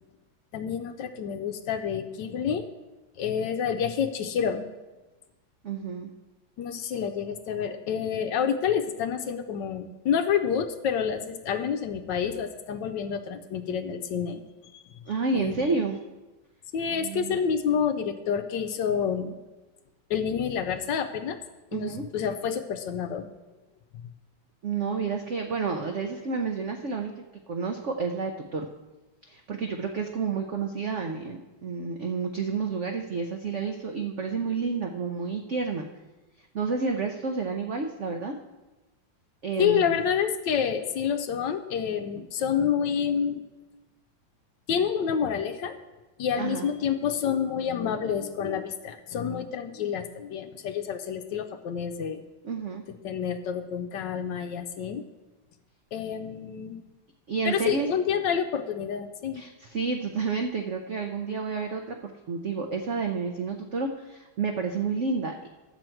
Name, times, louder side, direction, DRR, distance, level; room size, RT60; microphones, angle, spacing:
voice 1, 0.5-2.7 3.2-4.7 6.6-14.4 14.7-15.0 15.3-15.8 16.7-19.4 20.1-21.4 21.7-23.3 39.6-43.4 44.7-45.8 46.2-52.2 53.0-55.0 55.9-56.8 57.4-59.4, left 7 dB, 75° left, 8 dB, 1.2 m, -28 dB
voice 2, 5.6-6.1 15.1-16.0 16.9-17.4 21.7-22.1 24.6-28.7 29.3-35.9 36.5-38.3 39.4-39.8 46.4-46.7 52.4-52.8 57.3-57.9 59.3-65.5, right 4 dB, 80° right, 4 dB, 0.6 m, -30 dB
11.5 x 4.5 x 7.7 m, 1.1 s
omnidirectional pair, 2.2 m